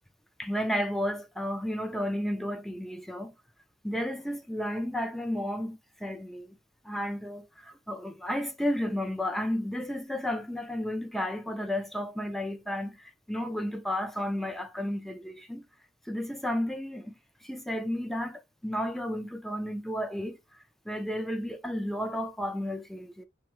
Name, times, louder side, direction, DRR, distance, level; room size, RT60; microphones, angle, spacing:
voice 1, 0.4-3.3 3.8-6.5 6.8-15.6 16.1-17.2 17.4-20.6 20.9-23.2, equal, ahead, 0.5 m, -32 dB
3.4 x 2.3 x 3.0 m
head